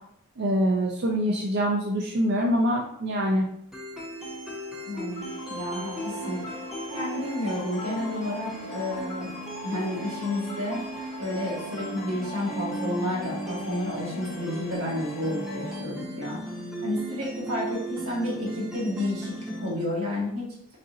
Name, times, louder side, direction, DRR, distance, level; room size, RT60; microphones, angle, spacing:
voice 1, 0.4-3.4, equal, 50° right, -1 dB, 0.4 m, -24 dB
sound 1, 3.7-19.7, right 1 dB, ahead, 0.7 m, -37 dB
voice 2, 4.8-6.4 6.9-9.3 9.6-10.9 11.2-16.4 16.8-20.5, left 1 dB, 75° right, -4 dB, 1.6 m, -31 dB
sound 2, 5.1-15.8, left 1 dB, 35° left, 0.9 m, -41 dB
4.0 x 3.7 x 2.7 m, 0.73 s
head